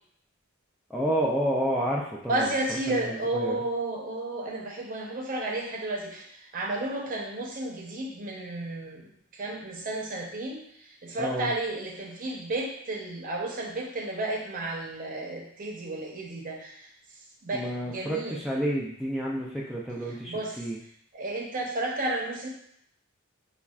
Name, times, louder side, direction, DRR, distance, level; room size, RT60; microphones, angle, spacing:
voice 1, 0.9-2.5 2.9-3.6 11.2-11.5 17.5-20.8, right 1 dB, ahead, -5 dB, 0.3 m, -30 dB
voice 2, 2.3-16.9 17.4-18.4 20.1-20.6 21.1-22.5, right 2 dB, 40° right, -1 dB, 0.7 m, -32 dB
5.2 x 2.3 x 2.3 m, 0.70 s
head